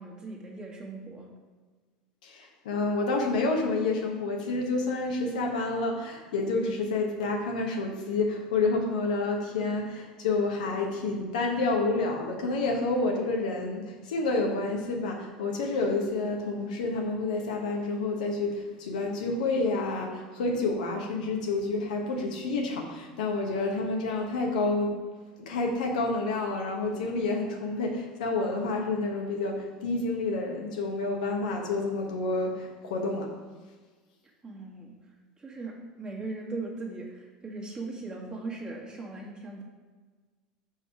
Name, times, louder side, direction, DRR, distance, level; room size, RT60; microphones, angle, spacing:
voice 1, 0.0-1.3 34.4-35.0 35.4-39.6, right 3 dB, 20° right, -2 dB, 1.7 m, -39 dB
voice 2, 2.2-24.9 25.5-33.3, left 3 dB, 80° left, 1 dB, 1.1 m, -29 dB
5.2 x 4.6 x 4.9 m, 1.4 s
hypercardioid pair, 80°, 4 cm